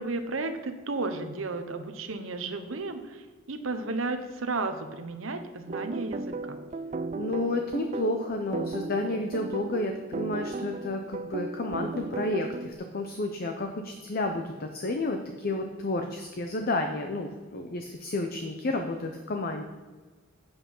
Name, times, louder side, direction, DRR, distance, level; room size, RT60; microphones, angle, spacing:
voice 1, 0.0-6.6, right 3 dB, 75° right, 8 dB, 0.9 m, -33 dB
sound 1, 5.7-12.7, right 3 dB, 35° right, 0.3 m, -35 dB
voice 2, 7.2-19.6, left 2 dB, 45° left, 4 dB, 0.7 m, -31 dB
8.3 x 7.9 x 5.5 m, 1.4 s
head